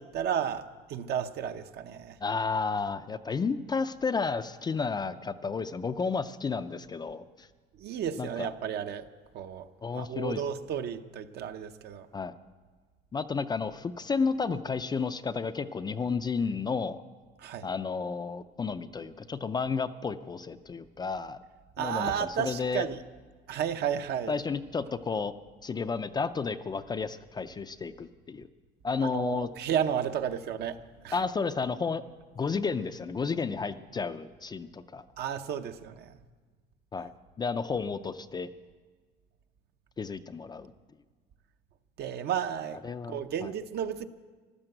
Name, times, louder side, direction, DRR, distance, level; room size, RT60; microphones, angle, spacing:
voice 1, 0.0-2.2 7.8-9.1 9.3-9.7 9.9-12.1 17.4-17.7 21.8-23.0 23.5-24.3 29.0-31.2 35.2-36.2 42.0-44.1, right 8 dB, 55° right, 9 dB, 0.8 m, -33 dB
voice 2, 2.2-7.5 8.2-8.5 9.8-10.4 12.1-12.3 13.1-17.0 17.6-21.4 21.8-22.9 24.3-25.3 25.6-28.5 28.8-29.5 31.1-32.0 32.4-35.0 36.9-37.1 37.4-38.5 40.0-40.7 42.8-43.5, left 5 dB, 20° left, 10 dB, 0.4 m, -32 dB
15.0 x 12.0 x 7.8 m, 1.4 s
cardioid pair, 135°, 20 cm